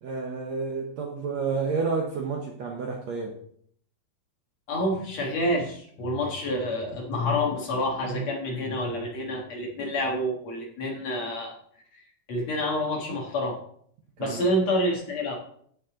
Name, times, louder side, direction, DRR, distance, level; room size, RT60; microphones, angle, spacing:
voice 1, 0.0-3.4 14.2-14.5, right 4 dB, 65° right, 0 dB, 1.8 m, -30 dB
voice 2, 4.7-11.6 12.3-13.6 14.2-15.4, left 1 dB, 55° left, -1 dB, 2.5 m, -28 dB
14.5 x 5.5 x 3.9 m, 0.62 s
omnidirectional pair, 4.3 m